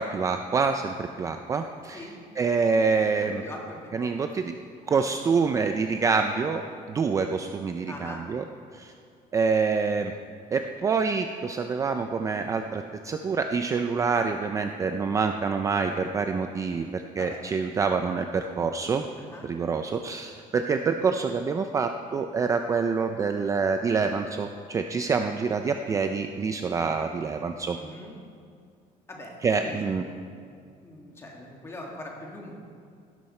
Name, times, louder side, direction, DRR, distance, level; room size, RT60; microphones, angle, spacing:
voice 1, 0.0-2.1 2.4-3.4 3.9-4.5 4.9-6.6 6.9-8.4 8.7-8.9 9.3-10.1 10.5-19.0 19.4-27.8 29.4-30.0, right 5 dB, 20° right, 6 dB, 0.4 m, -26 dB
voice 2, 3.0-4.2 7.9-8.2 17.1-17.4 19.2-19.5 27.7-28.2 29.1-30.3 30.8-32.5, left 1 dB, 15° left, -1 dB, 2.1 m, -42 dB
16.5 x 12.0 x 4.3 m, 2.3 s
cardioid pair, 170°, 15 cm